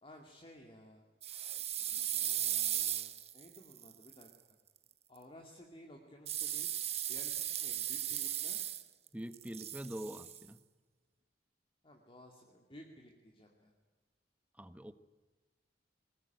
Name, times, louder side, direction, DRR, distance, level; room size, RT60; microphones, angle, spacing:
voice 1, 0.0-1.0 2.1-4.3 5.1-6.7 7.1-8.6 11.8-13.7, equal, 30° left, 1 dB, 2.4 m, -56 dB
sound 1, 1.2-4.3 6.3-9.1 9.3-10.4, right 11 dB, 35° right, 1.1 m, -37 dB
voice 2, 9.1-10.6 14.6-14.9, right 1 dB, 10° right, 12 dB, 1.1 m, -44 dB
21.5 x 20.0 x 9.3 m, 1.3 s
head